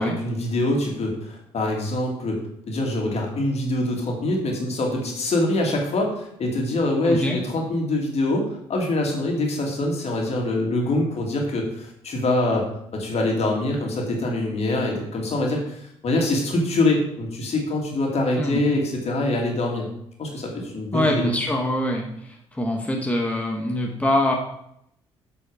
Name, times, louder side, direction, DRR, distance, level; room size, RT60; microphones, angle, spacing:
voice 1, 0.0-2.4 2.7-19.9 20.2-21.2, left 2 dB, 50° left, 0 dB, 2.6 m, -24 dB
voice 2, 7.0-7.4 18.3-18.6 20.9-24.3, left 1 dB, 10° left, 0 dB, 1.6 m, -24 dB
8.2 x 5.6 x 5.0 m, 0.75 s
hypercardioid pair, 45°, 14 cm